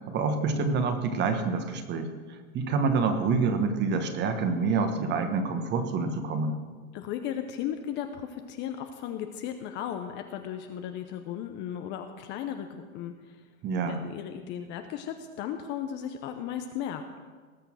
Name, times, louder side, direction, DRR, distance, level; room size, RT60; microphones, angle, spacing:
voice 1, 0.1-6.6 13.6-14.0, right 4 dB, 25° right, 8 dB, 1.3 m, -27 dB
voice 2, 6.9-13.4 13.9-17.1, left 9 dB, 25° left, 7 dB, 0.7 m, -36 dB
19.0 x 6.7 x 6.3 m, 1.5 s
hypercardioid pair, 125°, 42 cm